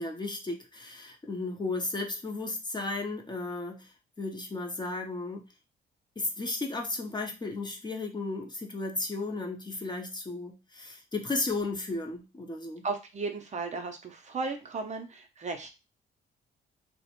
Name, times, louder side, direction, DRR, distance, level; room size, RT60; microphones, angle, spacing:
voice 1, 0.0-5.5 6.2-12.9, left 3 dB, 20° left, 2 dB, 0.5 m, -34 dB
voice 2, 12.8-15.7, right 4 dB, 35° right, 5 dB, 0.5 m, -35 dB
2.4 x 2.0 x 2.9 m, 0.27 s
cardioid pair, 90°, 20 cm